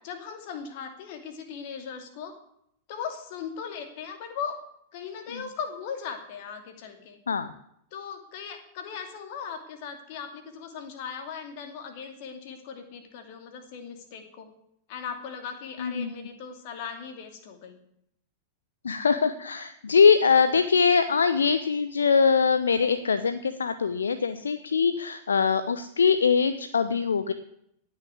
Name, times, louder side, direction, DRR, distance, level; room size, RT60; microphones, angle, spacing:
voice 1, 0.0-2.4 2.9-4.6 4.9-7.2 7.9-14.5 14.9-17.8, left 6 dB, 50° left, 5 dB, 2.7 m, -38 dB
voice 2, 15.8-16.1 18.8-27.3, left 5 dB, 70° left, 11 dB, 0.8 m, -22 dB
18.5 x 6.6 x 8.4 m, 0.75 s
figure-of-eight pair, 90°, 0 cm